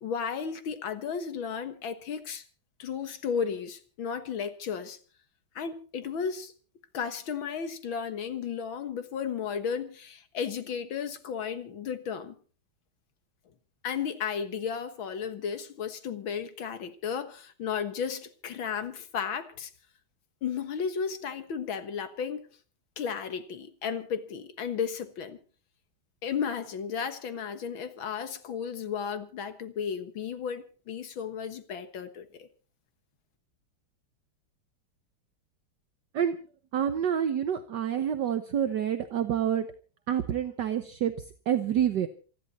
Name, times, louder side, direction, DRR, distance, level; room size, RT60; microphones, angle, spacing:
voice 1, 0.0-2.4 2.8-5.0 5.6-6.5 6.9-12.4 13.8-19.7 20.4-22.5 23.0-25.4 26.2-32.5, left 7 dB, 70° left, 2.2 m, -34 dB
voice 2, 36.7-39.7 40.1-41.1 41.5-42.1, right 9 dB, 60° right, 1.5 m, -27 dB
27.0 x 11.0 x 4.2 m
omnidirectional pair, 2.3 m